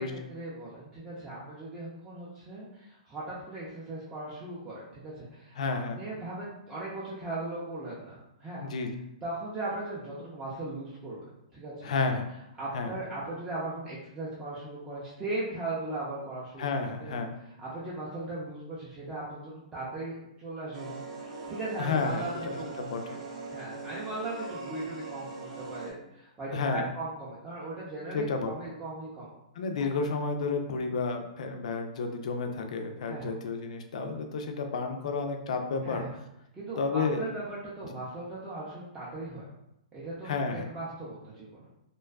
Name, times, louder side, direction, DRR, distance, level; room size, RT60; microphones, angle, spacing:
voice 1, 0.0-5.6 6.0-8.6 9.2-11.2 11.5-11.9 12.6-17.1 17.6-21.0 21.5-22.7 23.5-29.3 33.0-33.3 35.8-36.1 36.5-39.5 39.9-41.5, right 2 dB, 15° right, -8 dB, 0.4 m, -38 dB
voice 2, 5.6-6.0 8.6-9.0 11.8-12.3 12.7-13.0 16.6-17.3 21.8-23.2 26.5-26.9 28.1-28.5 29.6-36.1 36.8-37.2 40.2-40.7, left 4 dB, 65° left, 5 dB, 0.4 m, -31 dB
sound 1, 20.7-25.9, right 3 dB, 75° right, 0.6 m, -41 dB
2.5 x 2.2 x 2.3 m, 0.85 s
hypercardioid pair, 150°, 4 cm